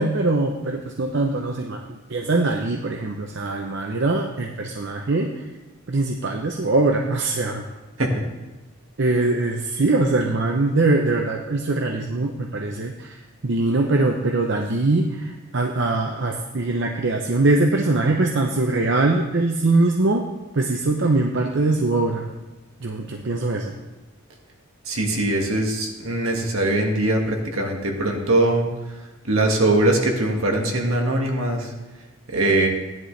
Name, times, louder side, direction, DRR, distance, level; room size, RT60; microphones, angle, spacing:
voice 1, 0.0-1.8 2.1-5.3 5.9-7.6 9.0-13.1 13.4-20.3 20.5-22.3 22.8-23.7, right 2 dB, 55° right, 2 dB, 0.7 m, -22 dB
voice 2, 24.9-28.7 29.2-31.7 32.3-32.7, right 1 dB, 75° right, 1 dB, 1.8 m, -21 dB
15.5 x 10.5 x 3.3 m, 1.1 s
head